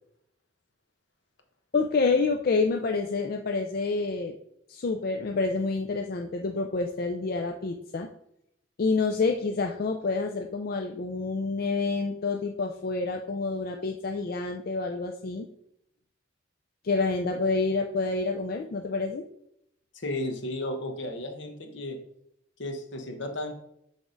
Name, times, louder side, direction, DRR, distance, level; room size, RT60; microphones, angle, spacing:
voice 1, 1.7-4.4 4.7-8.1 8.8-15.5 16.8-19.2, left 3 dB, 50° left, 4 dB, 0.4 m, -28 dB
voice 2, 19.9-22.0 22.6-23.5, left 1 dB, 75° left, 5 dB, 1.1 m, -34 dB
6.2 x 3.5 x 5.1 m, 0.78 s
head